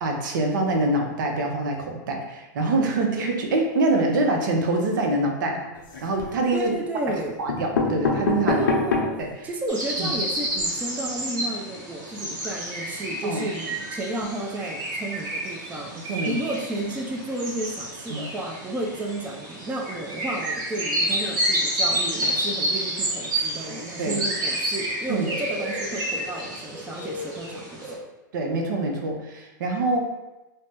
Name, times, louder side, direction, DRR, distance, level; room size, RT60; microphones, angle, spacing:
voice 1, 0.0-5.7 6.0-6.7 7.4-8.6 9.2-9.3 10.0-10.1 13.2-13.4 16.1-16.3 18.1-18.2 24.0-24.2 25.1-25.3 27.5-27.6 28.3-30.0, right 2 dB, 70° right, 2 dB, 0.6 m, -25 dB
sound 1, 5.7-6.4 7.1-7.2 7.5-9.3 9.8-9.9 10.1-10.2 10.5-10.6, left 4 dB, 80° left, 0.7 m, -25 dB
voice 2, 6.5-7.4 8.5-28.0, right 1 dB, 15° right, 0 dB, 0.4 m, -32 dB
sound 2, 9.7-28.0, right 1 dB, 35° right, 1.0 m, -29 dB
2.6 x 2.0 x 3.4 m, 1.0 s
hypercardioid pair, 115°, 11 cm